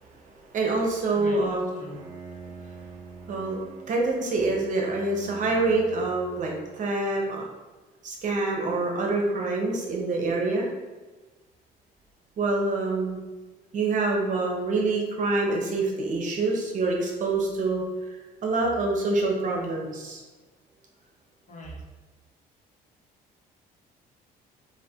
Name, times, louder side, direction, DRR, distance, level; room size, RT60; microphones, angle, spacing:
voice 1, 0.5-1.7 3.3-3.6 3.9-7.5 8.0-10.7 12.4-13.2 13.7-18.2 18.4-20.2, right 3 dB, 50° right, 0 dB, 0.9 m, -26 dB
voice 2, 1.1-2.0 21.5-21.8, left 1 dB, 45° left, -3 dB, 1.4 m, -43 dB
Bowed string instrument, 1.7-6.8, right 4 dB, 20° right, 0.6 m, -45 dB
4.7 x 2.6 x 3.6 m, 1.2 s
cardioid pair, 110°, 17 cm